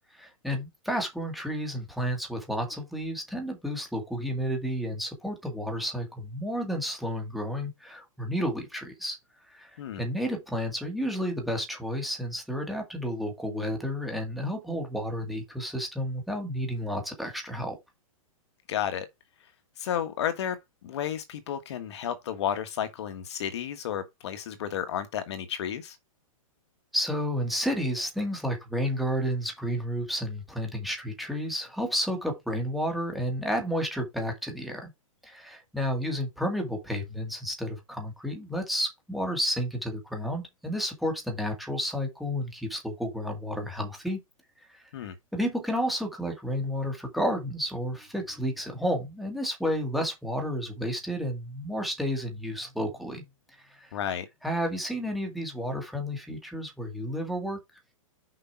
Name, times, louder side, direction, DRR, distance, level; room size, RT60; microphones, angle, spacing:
voice 1, 0.1-9.2 9.5-17.8 26.9-34.9 35.2-44.2 44.6-44.8 45.3-53.2 53.6-53.9 54.4-57.6, equal, ahead, 2.0 m, -31 dB
voice 2, 18.7-19.1 19.8-20.6 20.8-26.0 44.9-45.1 53.9-54.3, left 9 dB, 50° left, 1.4 m, -32 dB
6.6 x 5.3 x 4.5 m
hypercardioid pair, 165°, 18 cm